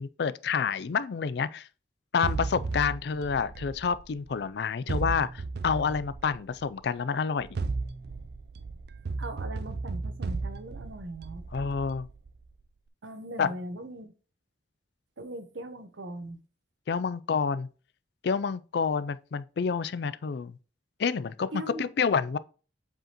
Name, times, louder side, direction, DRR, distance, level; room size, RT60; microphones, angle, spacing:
voice 1, 0.0-1.7 2.1-7.5 11.5-12.1 13.4-13.5 16.9-17.7 18.2-20.6 21.0-22.4, left 5 dB, 60° left, 0.4 m, -28 dB
sound 1, 2.2-4.4 4.9-6.7 7.4-12.5, right 3 dB, 55° right, 0.4 m, -35 dB
voice 2, 9.2-11.4 13.0-14.1 15.2-16.4 21.5-21.9, right 1 dB, 90° right, 0.9 m, -40 dB
7.7 x 4.9 x 2.9 m
head